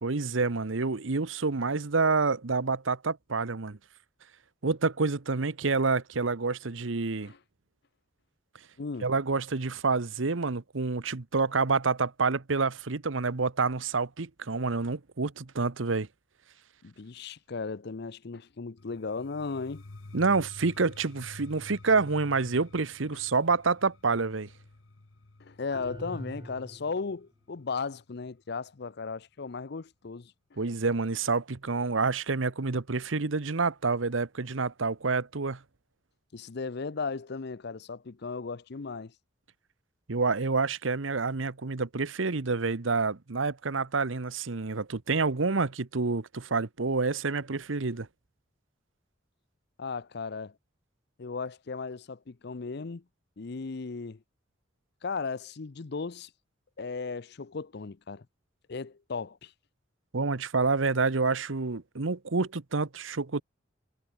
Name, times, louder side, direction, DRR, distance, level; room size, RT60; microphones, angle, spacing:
voice 1, 0.0-3.8 4.6-7.3 9.0-16.1 20.1-24.5 30.6-35.6 40.1-48.1 60.1-63.4, right 4 dB, 80° right, 1.0 m, -28 dB
voice 2, 8.8-9.1 16.8-19.8 25.4-30.6 36.3-39.1 49.8-50.5 51.2-53.0 53.4-54.2 55.0-56.3 56.8-58.3 58.7-59.5, left 4 dB, 55° left, 0.6 m, -36 dB
sound 1, 18.8-28.6, left 2 dB, 80° left, 1.1 m, -50 dB
sound 2, 25.7-27.2, equal, 25° right, 3.2 m, -43 dB
head